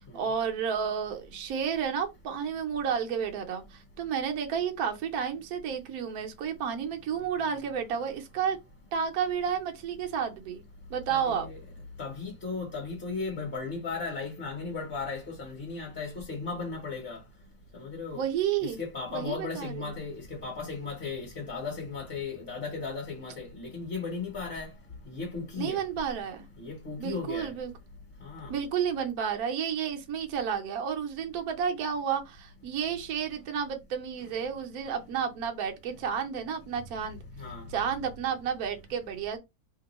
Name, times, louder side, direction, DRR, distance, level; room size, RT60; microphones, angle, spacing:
voice 1, 0.1-8.6 8.9-10.6 10.9-11.5 18.1-18.8 19.1-19.9 25.5-26.5 27.0-27.7 28.5-37.2 37.7-39.4, right 7 dB, 70° right, 1.1 m, -31 dB
voice 2, 11.1-11.6 12.0-17.2 17.7-18.2 18.6-24.7 25.1-25.8 26.6-27.5 28.2-28.5 37.4-37.7, left 4 dB, 40° left, 1.1 m, -36 dB
2.9 x 2.5 x 4.0 m
omnidirectional pair, 1.7 m